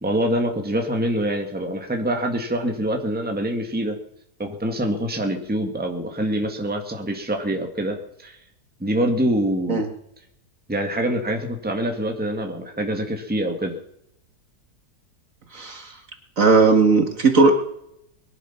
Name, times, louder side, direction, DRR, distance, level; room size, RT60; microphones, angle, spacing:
voice 1, 0.0-4.0 4.4-8.4 8.8-9.8 10.7-13.8, right 1 dB, 5° right, 3 dB, 1.8 m, -25 dB
voice 2, 15.5-15.9 16.4-17.5, right 4 dB, 50° right, 5 dB, 2.1 m, -17 dB
22.0 x 11.0 x 5.8 m, 0.77 s
omnidirectional pair, 1.8 m